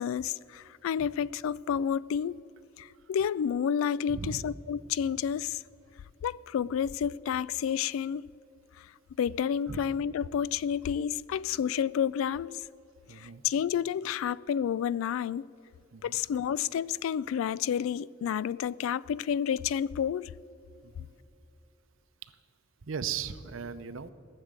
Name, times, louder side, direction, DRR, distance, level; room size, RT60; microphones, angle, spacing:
voice 1, 0.0-2.4 2.8-5.6 6.2-8.3 9.2-12.6 13.2-15.4 16.0-20.3, left 8 dB, 90° left, 0.3 m, -30 dB
voice 2, 4.1-4.5 9.7-9.9 13.1-13.4 15.9-16.2 20.8-21.1 22.8-24.1, right 6 dB, 75° right, 0.6 m, -38 dB
18.0 x 6.5 x 8.8 m
head